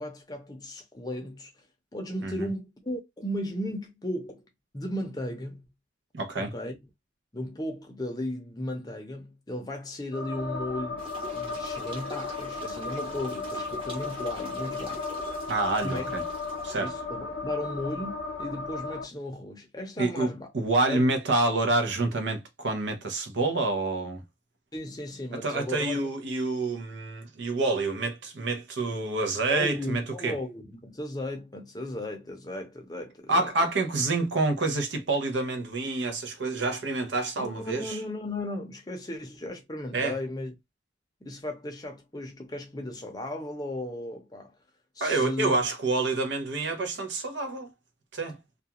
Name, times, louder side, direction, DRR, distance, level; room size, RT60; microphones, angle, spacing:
voice 1, 0.0-1.5 1.9-4.5 4.7-5.6 6.4-6.8 7.3-15.1 15.8-16.1 16.8-20.5 20.9-21.1 24.7-26.1 29.5-33.5 37.4-40.5 41.2-44.5 45.0-45.7, left 1 dB, 20° left, 0.6 m, -35 dB
voice 2, 6.1-6.5 15.5-16.2 16.6-16.9 20.0-20.3 20.5-24.2 25.3-30.4 33.3-38.0 39.9-40.1 45.0-47.7 48.1-48.4, right 2 dB, 70° right, 0.7 m, -27 dB
sound 1, 10.1-19.0, left 3 dB, 85° left, 0.6 m, -35 dB
sound 2, 11.0-16.9, equal, 30° right, 0.9 m, -45 dB
2.4 x 2.2 x 2.8 m
head